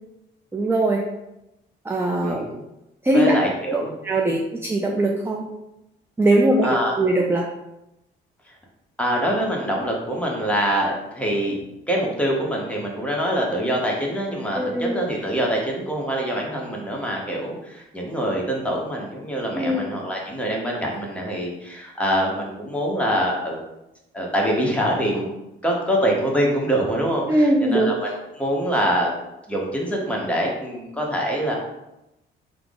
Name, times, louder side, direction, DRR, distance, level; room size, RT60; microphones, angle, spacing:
voice 1, 0.5-1.0 1.8-2.6 3.0-3.3 4.0-5.4 6.2-7.5 14.5-15.0 19.5-19.9 27.3-27.9, right 1 dB, 10° right, 0 dB, 0.3 m, -21 dB
voice 2, 3.1-3.9 6.6-7.0 9.0-11.6 11.9-23.6 24.1-25.3 25.6-28.1 28.4-29.1 29.5-31.5, equal, 5° left, -2 dB, 0.9 m, -24 dB
3.4 x 2.0 x 3.5 m, 0.91 s
cardioid pair, 90°, 20 cm